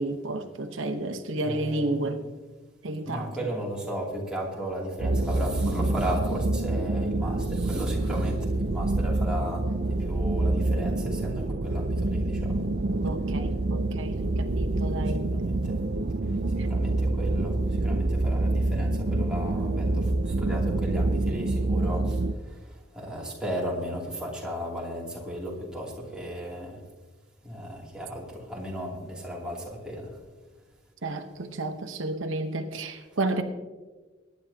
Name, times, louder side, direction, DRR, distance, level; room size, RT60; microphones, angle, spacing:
voice 1, 0.0-2.2 2.8-3.5 13.0-15.3 16.6-16.7 31.0-33.4, right 2 dB, 80° right, 6 dB, 1.0 m, -31 dB
voice 2, 1.4-2.1 3.1-9.6 10.0-12.6 15.1-15.7 16.5-22.2 22.5-26.8 27.4-30.2, equal, 5° right, -4 dB, 2.8 m, -35 dB
sound 1, 5.0-22.3, right 2 dB, 50° right, 0.5 m, -27 dB
22.5 x 10.5 x 2.8 m, 1.3 s
head